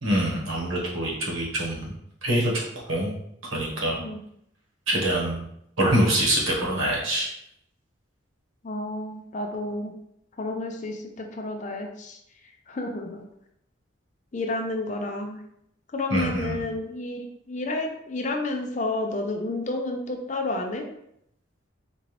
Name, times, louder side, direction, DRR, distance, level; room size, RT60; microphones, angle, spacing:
voice 1, 0.0-1.9 2.2-2.6 2.9-3.1 3.5-4.0 4.9-5.4 5.8-7.3 16.1-16.6, right 1 dB, 85° right, -3 dB, 1.3 m, -24 dB
voice 2, 8.6-9.9 10.4-12.2 12.7-13.3 14.3-15.4 15.9-20.9, left 2 dB, 35° left, 3 dB, 0.5 m, -30 dB
4.4 x 2.5 x 3.3 m, 0.75 s
head